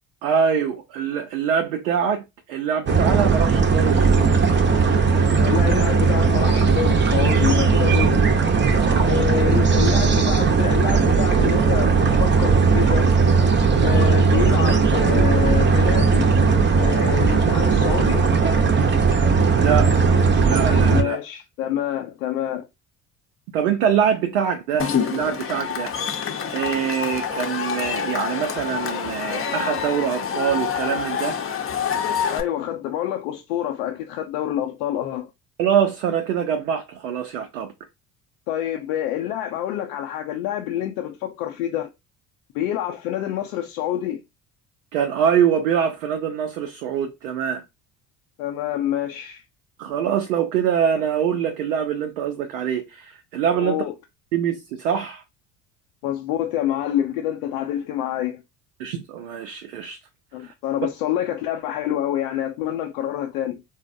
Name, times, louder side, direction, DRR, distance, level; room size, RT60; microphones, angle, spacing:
voice 1, 0.2-4.3 8.8-9.1 19.5-19.9 20.4-21.2 23.5-26.2 26.5-31.4 35.6-37.7 44.9-47.6 49.8-53.8 54.3-55.2 58.8-60.0 60.4-60.5, right 8 dB, 85° right, 0.6 m, -24 dB
sound 1, 2.9-21.0, right 5 dB, 25° right, 0.6 m, -18 dB
voice 2, 5.4-8.3 9.0-13.1 13.8-16.3 16.8-18.3 20.9-22.7 32.3-35.3 38.5-41.9 42.5-44.2 48.4-49.4 53.6-53.9 56.0-58.4 60.3-63.6, left 11 dB, 75° left, 0.6 m, -27 dB
Cheering / Crowd, 24.8-32.4, left 7 dB, 30° left, 0.7 m, -27 dB
3.9 x 2.1 x 2.5 m
hypercardioid pair, 65°, 42 cm